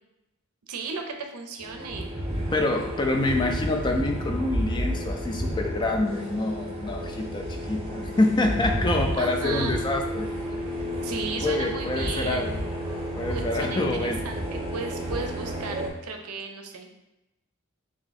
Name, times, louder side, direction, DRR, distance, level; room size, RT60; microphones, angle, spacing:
voice 1, 0.7-2.1 9.2-9.7 10.7-12.5 13.3-17.0, right 4 dB, 85° right, 4 dB, 0.6 m, -35 dB
sound 1, 1.6-15.9, equal, 25° right, 0.7 m, -31 dB
voice 2, 2.5-10.6 11.4-12.6 13.2-14.2, left 2 dB, 20° left, 3 dB, 0.3 m, -26 dB
3.6 x 2.6 x 3.9 m, 0.93 s
head